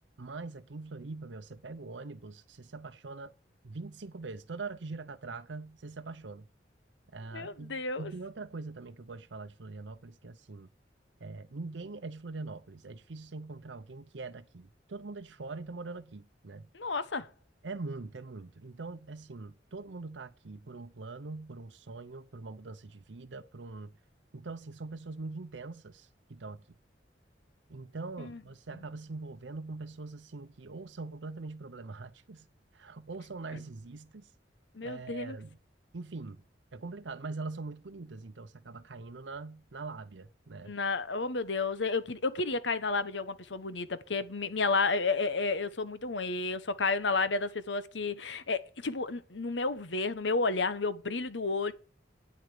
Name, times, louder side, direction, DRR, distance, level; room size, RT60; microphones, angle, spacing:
voice 1, 0.2-3.3 3.6-6.4 7.1-10.7 11.2-16.7 17.6-23.9 24.3-26.6 27.7-32.5 32.7-34.3 34.8-35.6 35.9-36.4 36.7-40.7, right 3 dB, 85° right, 0.7 m, -43 dB
voice 2, 7.3-8.1 16.7-17.3 28.2-28.4 34.7-35.4 40.6-51.7, left 3 dB, 85° left, 1.1 m, -31 dB
9.1 x 8.0 x 9.1 m
head